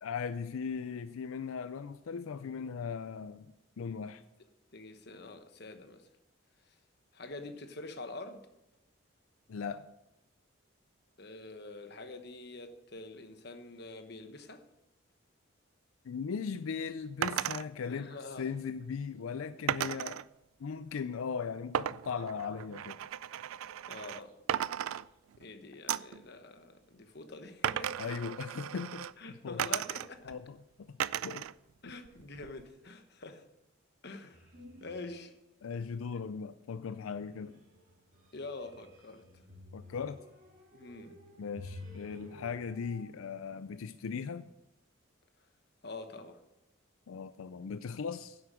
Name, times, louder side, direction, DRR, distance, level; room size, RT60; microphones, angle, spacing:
voice 1, 0.0-3.5 3.8-4.2 9.5-9.9 16.0-18.1 18.4-20.2 20.6-23.0 28.0-29.7 30.3-31.0 31.2-31.5 35.6-37.6 39.7-40.2 41.4-44.5 47.1-48.4, left 6 dB, 85° left, 0.4 m, -38 dB
voice 2, 4.7-6.1 7.1-8.4 11.2-14.6 17.9-18.5 19.8-20.0 23.9-24.4 25.4-28.0 29.2-30.3 31.8-33.4 34.0-34.5 34.8-35.3 36.1-36.2 38.3-39.2 40.7-41.2 45.8-46.4, left 2 dB, 50° left, 1.1 m, -46 dB
sound 1, 17.2-17.6 19.7-20.2 21.7-24.2 24.5-25.5 25.9-26.2 27.6-29.1 29.6-30.3 31.0-31.5 31.9-32.7, right 10 dB, 90° right, 0.3 m, -35 dB
sound 2, 34.3-35.3 35.7-36.3 37.0-43.0, left 1 dB, 40° right, 2.2 m, -52 dB
10.5 x 7.9 x 6.2 m
head